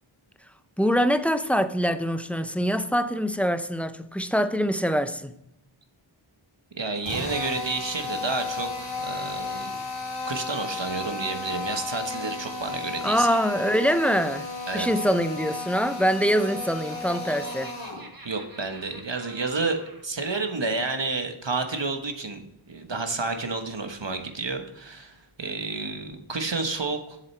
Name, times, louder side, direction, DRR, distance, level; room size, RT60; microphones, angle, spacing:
voice 1, 0.8-5.3 13.0-17.7, equal, 5° left, 0.5 m, -24 dB
voice 2, 6.7-9.8 10.2-13.3 14.7-14.9 18.2-22.4 22.7-27.2, right 3 dB, 60° right, 1.3 m, -30 dB
Drill, 7.0-18.1, left 3 dB, 90° left, 2.8 m, -34 dB
Laughter, 16.7-20.0, right 2 dB, 45° right, 1.4 m, -46 dB
7.5 x 7.4 x 4.4 m
wide cardioid pair, 45°, 50 cm